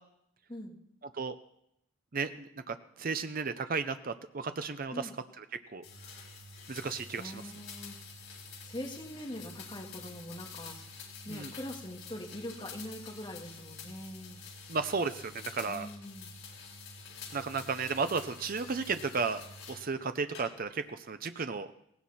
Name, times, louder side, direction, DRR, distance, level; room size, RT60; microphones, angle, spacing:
voice 1, 2.1-5.1 5.4-5.5 5.7-5.8 6.7-7.4 11.3-11.5 14.7-15.9 17.3-21.7, right 4 dB, 40° right, 10 dB, 0.6 m, -34 dB
sound 1, 5.8-19.9 20.3-20.9, left 4 dB, 80° left, 4.2 m, -48 dB
voice 2, 7.2-8.0 8.6-11.0 11.2-14.4 15.7-16.3, left 1 dB, 20° left, 0 dB, 2.0 m, -43 dB
18.0 x 16.5 x 4.3 m, 0.77 s
head